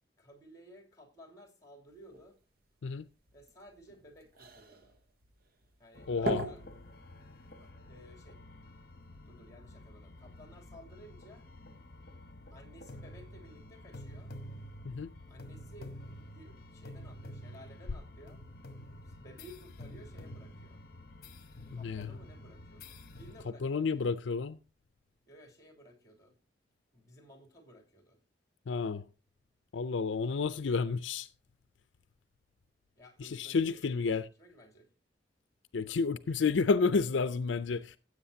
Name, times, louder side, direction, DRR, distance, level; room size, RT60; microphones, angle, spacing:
voice 1, 0.2-2.4 3.3-5.0 5.8-6.6 7.6-8.4 9.3-11.5 12.5-14.3 15.3-16.0 16.3-18.4 19.0-20.8 21.7-24.1 25.2-26.4 26.9-28.2 32.9-34.9, equal, 20° left, 2.9 m, -56 dB
sound 1, 1.9-7.7, right 2 dB, 55° right, 1.1 m, -42 dB
sound 2, 5.9-23.5, left 1 dB, 55° left, 1.1 m, -49 dB
voice 2, 6.1-6.5 14.8-15.1 21.7-22.1 23.6-24.6 28.7-29.1 29.7-31.3 33.2-34.3 35.7-38.0, left 4 dB, 85° left, 0.5 m, -30 dB
15.5 x 8.0 x 2.7 m
head